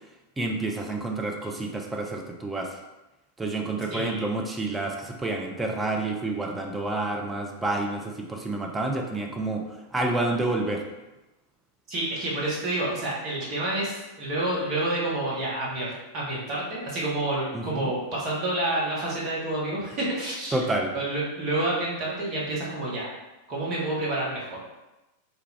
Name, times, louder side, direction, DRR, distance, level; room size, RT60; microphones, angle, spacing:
voice 1, 0.4-2.7 3.4-9.6 9.9-10.8 17.5-17.9 20.5-20.9, right 2 dB, 10° right, 1 dB, 0.6 m, -29 dB
voice 2, 3.9-4.2 11.9-20.6 20.9-23.1 23.5-24.6, right 1 dB, 35° right, -6 dB, 1.3 m, -29 dB
4.6 x 2.3 x 3.3 m, 1.0 s
figure-of-eight pair, 90°, 0 cm